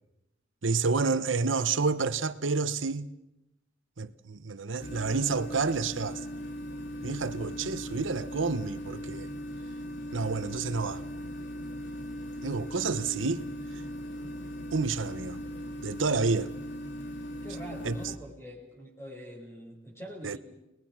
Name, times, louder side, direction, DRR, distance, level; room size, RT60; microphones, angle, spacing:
voice 1, 0.6-3.1 4.0-6.2 7.0-9.3 10.1-11.0 12.4-13.5 14.7-15.4 15.8-16.5 17.8-18.0 20.2-20.4, right 4 dB, 80° right, 1.0 m, -29 dB
sound 1, 4.8-18.2, equal, 60° left, 2.8 m, -39 dB
voice 2, 17.4-20.4, equal, 15° left, 5.4 m, -44 dB
29.5 x 20.5 x 6.0 m
head